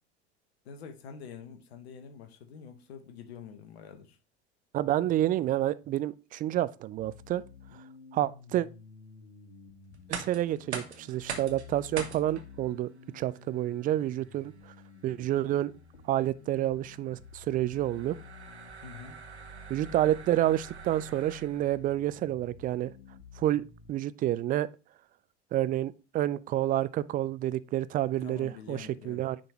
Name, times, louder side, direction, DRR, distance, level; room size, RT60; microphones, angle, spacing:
voice 1, 0.6-4.2 18.8-19.2 28.2-29.3, left 7 dB, 70° left, 1.2 m, -46 dB
voice 2, 4.7-7.4 8.1-8.7 10.1-12.9 13.1-14.5 15.0-15.7 16.1-18.2 19.7-22.9 23.4-24.7 25.5-29.4, right 13 dB, 25° right, 0.3 m, -29 dB
sound 1, 7.0-23.9, left 3 dB, 85° left, 1.6 m, -51 dB
sound 2, 9.9-21.8, right 6 dB, 85° right, 1.0 m, -44 dB
10.0 x 3.8 x 3.0 m
figure-of-eight pair, 75°, 32 cm